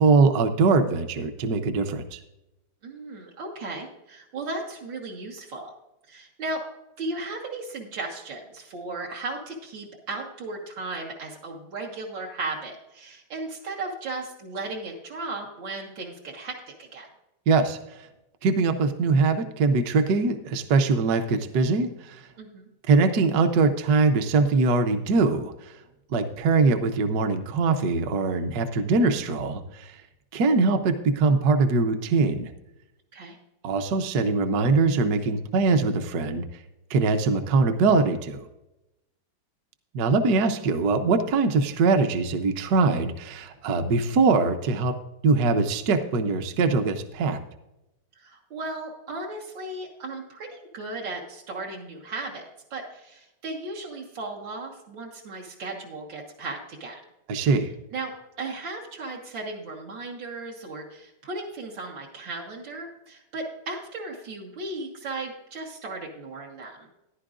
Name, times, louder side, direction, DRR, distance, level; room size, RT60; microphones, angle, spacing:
voice 1, 0.0-2.2 17.5-17.8 18.4-22.3 22.9-25.7 26.1-30.0 30.3-32.5 33.6-36.4 36.9-38.4 39.9-45.0 45.2-47.4 57.3-57.7, right 4 dB, 65° right, 7 dB, 1.2 m, -22 dB
voice 2, 2.8-5.7 6.1-6.6 7.0-17.1 22.4-22.7 33.1-33.4 48.2-57.0 57.9-58.1 58.4-66.9, right 2 dB, 85° right, -1 dB, 2.1 m, -36 dB
14.5 x 10.5 x 2.5 m, 0.92 s
omnidirectional pair, 2.0 m